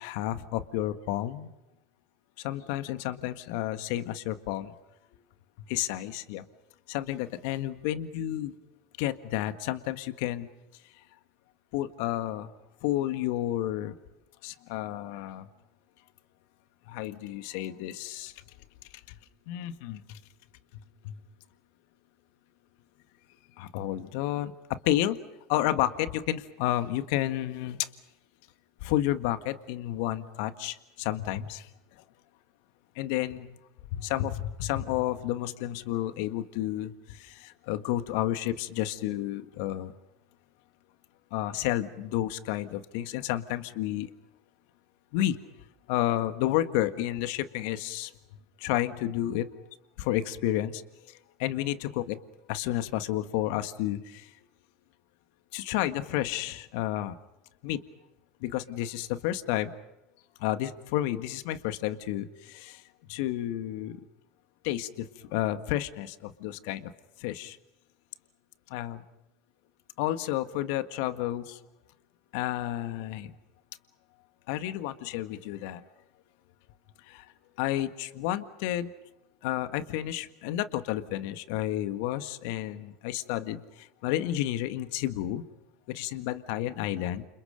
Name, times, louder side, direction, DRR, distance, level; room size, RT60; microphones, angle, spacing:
voice 1, 0.0-1.5 2.4-4.7 5.7-6.4 6.9-8.5 9.0-10.5 11.7-12.5 12.8-14.0 14.4-15.5 16.9-18.3 19.1-19.2 19.5-20.2 21.0-21.2 23.6-25.2 25.5-27.9 28.8-31.7 33.0-33.6 33.9-39.9 41.3-44.1 45.1-45.4 45.9-48.1 48.6-49.5 50.0-50.8 51.1-52.2 52.5-54.3 55.5-57.2 57.6-57.8 58.4-59.7 60.4-62.8 63.1-64.0 64.6-66.9 67.2-67.6 68.7-69.0 70.0-71.6 72.3-73.3 74.5-75.8 77.1-77.3 77.6-78.9 79.4-85.4 85.9-87.3, left 13 dB, 65° left, 10 dB, 1.7 m, -31 dB
29.5 x 28.0 x 5.2 m, 0.92 s
hypercardioid pair, 85°, 0 cm